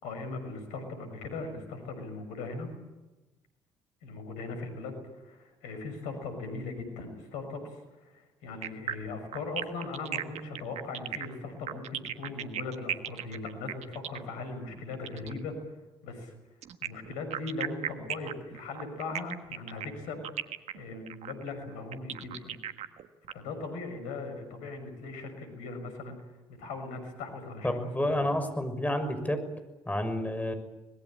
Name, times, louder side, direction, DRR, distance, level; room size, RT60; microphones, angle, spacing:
voice 1, 0.0-2.7 4.0-15.6 16.0-16.3 16.8-20.2 20.7-22.6 23.3-26.2 26.6-28.2, left 3 dB, 75° left, 8 dB, 6.1 m, -39 dB
sound 1, 8.6-15.4 16.6-23.3, right 10 dB, 60° right, 1.5 m, -37 dB
voice 2, 27.6-29.4 29.9-30.5, left 1 dB, 10° left, 8 dB, 6.2 m, -29 dB
24.5 x 20.5 x 8.8 m, 1.1 s
hypercardioid pair, 50°, 13 cm